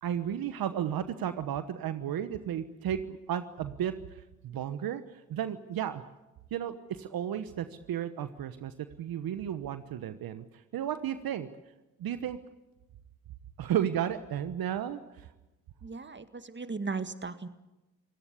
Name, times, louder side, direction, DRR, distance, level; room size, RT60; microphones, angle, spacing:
voice 1, 0.0-3.9 4.4-5.0 5.3-6.0 6.5-10.4 10.7-11.5 12.0-12.4 13.6-15.3, right 10 dB, 70° right, 11 dB, 1.1 m, -33 dB
voice 2, 15.8-17.5, right 4 dB, 30° right, 11 dB, 1.9 m, -37 dB
29.0 x 17.0 x 8.5 m, 1.0 s
hypercardioid pair, 40°, 37 cm